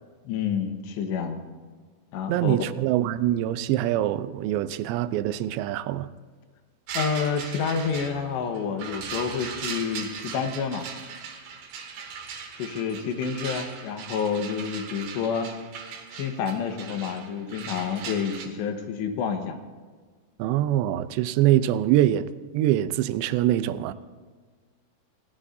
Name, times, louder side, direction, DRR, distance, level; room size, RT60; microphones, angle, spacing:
voice 1, 0.2-1.4 2.1-2.6 6.9-10.9 12.6-15.5 16.1-19.6, left 6 dB, 80° left, 3.4 m, -29 dB
voice 2, 2.3-6.1 20.4-23.9, right 13 dB, 85° right, 2.9 m, -24 dB
sound 1, 6.9-18.5, right 6 dB, 65° right, 3.2 m, -38 dB
29.0 x 17.5 x 2.7 m
omnidirectional pair, 5.0 m